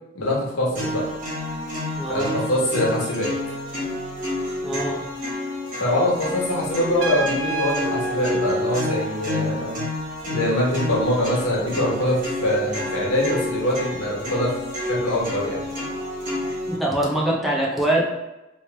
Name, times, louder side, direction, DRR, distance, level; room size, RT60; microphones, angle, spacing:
voice 1, 0.1-1.0 2.1-3.3 5.8-9.9 10.2-14.5 14.8-15.6, left 1 dB, 85° left, -4 dB, 1.3 m, -23 dB
sound 1, 0.8-16.8, left 1 dB, 40° right, 1.4 m, -29 dB
voice 2, 2.0-2.4 4.6-5.0 16.7-18.0, right 1 dB, ahead, -4 dB, 0.5 m, -23 dB
Trumpet, 7.0-9.6, right 3 dB, 65° right, 0.6 m, -31 dB
3.1 x 3.1 x 3.3 m, 0.96 s
head